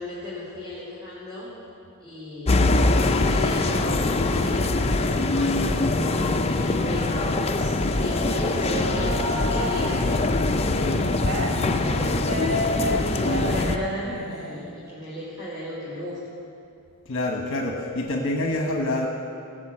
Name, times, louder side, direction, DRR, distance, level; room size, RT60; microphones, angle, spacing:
voice 1, 0.0-1.5 2.0-4.7 5.0-7.1 7.6-10.9 11.5-16.2, left 1 dB, 15° right, -9 dB, 3.4 m, -35 dB
sound 1, 2.5-13.8, left 2 dB, 30° left, 0.5 m, -23 dB
singing twinkle twinkle Mr. moon, 7.1-10.1 10.7-14.6, equal, 75° right, 2.7 m, -31 dB
voice 2, 17.0-19.1, left 1 dB, 60° left, 1 dB, 1.1 m, -26 dB
18.5 x 6.5 x 7.6 m, 2.5 s
head